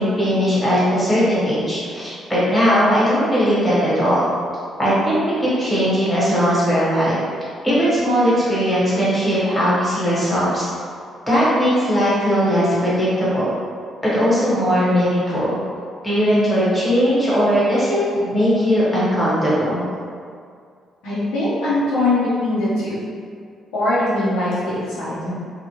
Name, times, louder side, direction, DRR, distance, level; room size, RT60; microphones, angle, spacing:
voice 1, 0.0-4.2 4.8-7.2 7.6-10.7 11.3-13.5 14.1-15.6 16.0-19.8, equal, 5° left, -10 dB, 1.2 m, -18 dB
voice 2, 21.0-23.0 23.7-25.3, left 2 dB, 90° left, -9 dB, 1.0 m, -21 dB
2.4 x 2.1 x 3.0 m, 2.2 s
cardioid pair, 90°, 0 cm